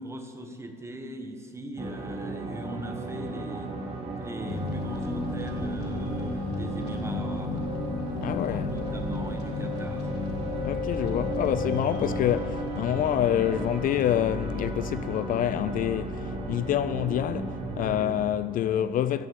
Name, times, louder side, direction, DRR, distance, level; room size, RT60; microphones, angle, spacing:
voice 1, 0.0-3.8 4.2-7.7 8.3-10.1 10.9-11.2, right 1 dB, 15° right, 1.3 m, -40 dB
sound 1, 1.8-18.1, right 2 dB, 35° right, 1.7 m, -36 dB
sound 2, 4.5-17.9, left 3 dB, 80° left, 1.5 m, -35 dB
voice 2, 8.2-8.7 10.6-19.3, left 11 dB, 55° left, 0.4 m, -27 dB
14.0 x 6.2 x 7.2 m
cardioid pair, 110°, 17 cm